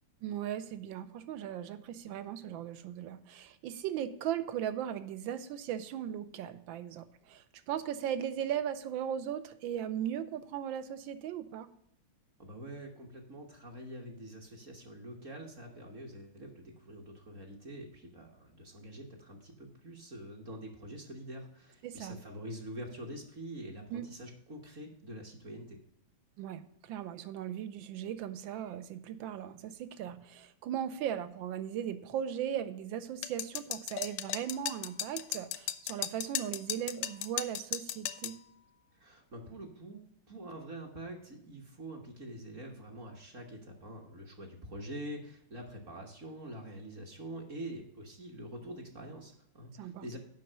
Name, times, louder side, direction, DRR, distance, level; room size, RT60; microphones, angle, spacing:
voice 1, 0.2-11.7 21.8-22.2 23.9-24.1 26.4-38.3 49.8-50.2, right 10 dB, 75° right, 12 dB, 1.4 m, -38 dB
voice 2, 12.4-25.8 38.9-40.0 40.3-50.2, right 1 dB, 45° right, 1 dB, 1.4 m, -45 dB
sound 1, 33.2-38.4, left 12 dB, 75° left, 1.2 m, -36 dB
7.5 x 5.6 x 6.7 m, 0.73 s
omnidirectional pair, 2.2 m